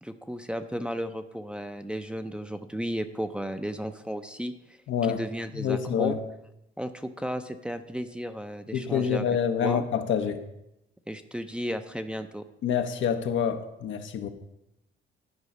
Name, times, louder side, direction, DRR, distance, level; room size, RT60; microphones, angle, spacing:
voice 1, 0.0-4.5 5.1-6.2 6.8-9.3 9.6-9.8 11.1-12.4, equal, 5° right, 0.6 m, -34 dB
voice 2, 4.9-5.2 5.5-6.2 8.7-10.4 12.6-14.3, left 8 dB, 75° left, 0.9 m, -27 dB
11.5 x 4.8 x 5.3 m
cardioid pair, 90°, 20 cm